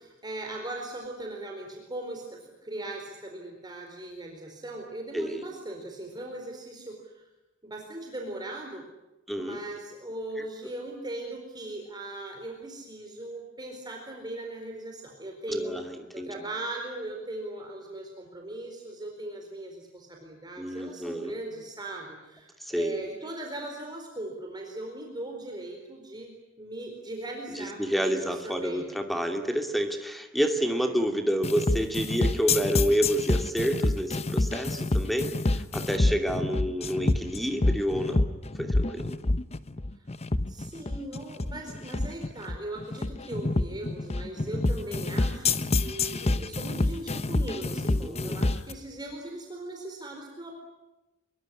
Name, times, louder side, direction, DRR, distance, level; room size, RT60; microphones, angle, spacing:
voice 1, 0.0-7.2 7.6-8.8 9.4-15.8 16.1-28.9 30.7-30.9 40.5-50.5, right 1 dB, 20° right, 1 dB, 4.3 m, -39 dB
voice 2, 5.1-5.4 9.3-9.6 15.5-16.3 20.6-21.3 22.6-23.0 27.5-38.3 38.6-39.1 47.9-48.4, equal, ahead, 5 dB, 2.6 m, -29 dB
sound 1, 31.4-48.7, left 2 dB, 30° left, 0.9 m, -27 dB
25.0 x 22.5 x 9.9 m, 1.0 s
head